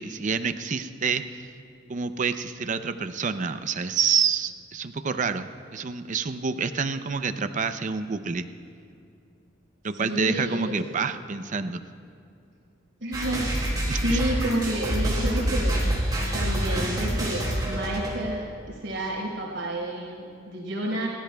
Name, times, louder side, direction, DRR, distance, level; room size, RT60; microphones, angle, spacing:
voice 1, 0.0-1.5 1.9-8.5 9.8-11.8 13.8-14.2, right 5 dB, 40° right, 10 dB, 0.5 m, -28 dB
voice 2, 9.9-10.7 13.0-15.7 16.3-21.1, right 1 dB, 80° right, -2 dB, 4.5 m, -30 dB
sound 1, 13.1-18.4, right 1 dB, 20° right, 3.1 m, -27 dB
30.0 x 15.0 x 2.3 m, 2.5 s
head